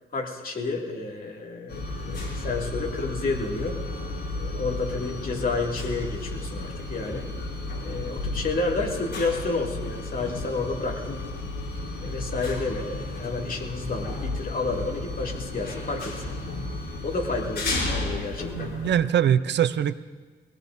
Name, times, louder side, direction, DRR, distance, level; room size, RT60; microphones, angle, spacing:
voice 1, 0.1-1.8 2.1-3.8 4.3-7.3 7.8-11.3 12.0-16.3 17.0-18.7, left 3 dB, 50° left, 0 dB, 2.4 m, -30 dB
sound 1, 1.7-19.0, left 2 dB, 70° left, 3.9 m, -33 dB
voice 2, 18.6-19.9, right 9 dB, 70° right, 14 dB, 0.5 m, -22 dB
22.0 x 18.0 x 2.6 m, 1.4 s
cardioid pair, 90°, 19 cm